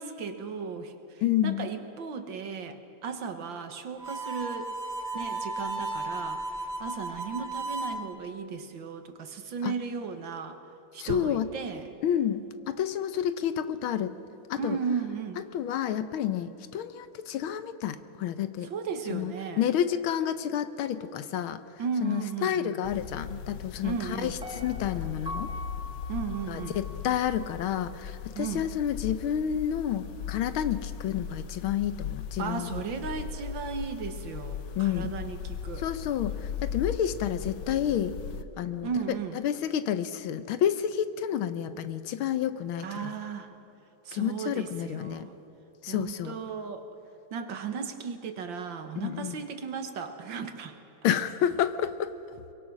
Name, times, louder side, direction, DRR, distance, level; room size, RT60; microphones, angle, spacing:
voice 1, 0.0-4.7 5.1-10.6 10.9-11.9 14.6-15.4 18.7-19.7 21.8-22.8 23.8-24.4 26.1-26.8 28.4-28.7 32.4-35.8 38.8-39.4 42.8-43.5 44.1-45.4 45.9-46.9 47.3-50.8, right 6 dB, 65° right, 7 dB, 2.0 m, -35 dB
voice 2, 1.2-1.7 9.6-9.7 11.0-11.5 12.0-14.2 14.5-14.8 15.5-18.7 19.1-21.6 22.0-25.5 26.5-32.8 34.8-35.1 35.8-38.2 38.6-38.9 39.3-43.1 44.1-45.3 45.8-46.4 49.0-49.4 51.0-52.1, left 10 dB, 80° left, 12 dB, 1.7 m, -30 dB
Harmonica, 4.0-8.0, right 2 dB, 35° right, 1.8 m, -34 dB
sound 1, 22.8-38.4, left 8 dB, 65° left, 1.3 m, -38 dB
Piano, 24.4-27.5 27.9-28.0, left 2 dB, 5° right, 0.7 m, -42 dB
23.5 x 22.5 x 6.2 m, 3.0 s
omnidirectional pair, 2.2 m